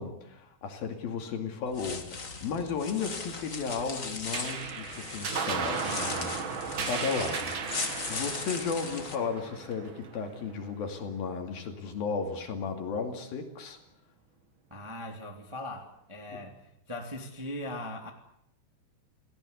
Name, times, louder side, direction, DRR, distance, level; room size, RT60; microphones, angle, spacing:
voice 1, 0.0-13.8 16.3-16.5, left 5 dB, 60° left, 5 dB, 4.1 m, -35 dB
sound 1, 1.7-9.2, left 4 dB, 45° left, 1.0 m, -38 dB
sound 2, 4.3-11.1, right 6 dB, 60° right, 1.2 m, -36 dB
voice 2, 14.7-16.6 16.9-18.1, left 1 dB, 10° right, 2 dB, 1.9 m, -39 dB
28.5 x 17.5 x 8.3 m, 0.77 s
omnidirectional pair, 5.0 m